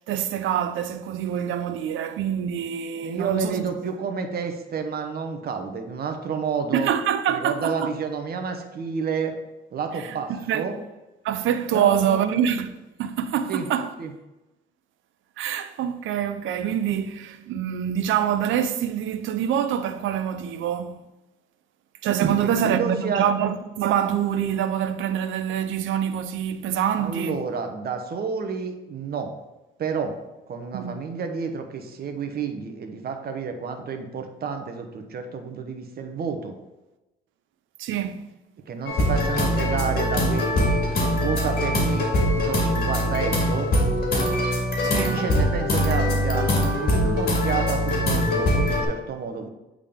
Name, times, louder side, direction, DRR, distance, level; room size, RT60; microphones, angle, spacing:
voice 1, 0.1-3.7 6.7-7.9 10.0-10.6 11.2-13.9 15.4-21.0 22.0-27.4 30.7-31.0 37.8-38.4 44.8-45.3, right 9 dB, 80° right, 0.5 m, -25 dB
voice 2, 3.0-6.9 7.3-9.3 9.7-10.8 11.7-12.3 13.5-13.7 14.0-14.1 22.4-23.3 27.0-29.3 29.8-30.2 30.5-36.6 38.7-40.8 41.1-43.7 45.0-49.5, right 5 dB, 50° right, 0.9 m, -30 dB
sound 1, 38.9-48.9, left 1 dB, 50° left, 2.0 m, -22 dB
8.4 x 3.7 x 3.6 m
cardioid pair, 90°, 20 cm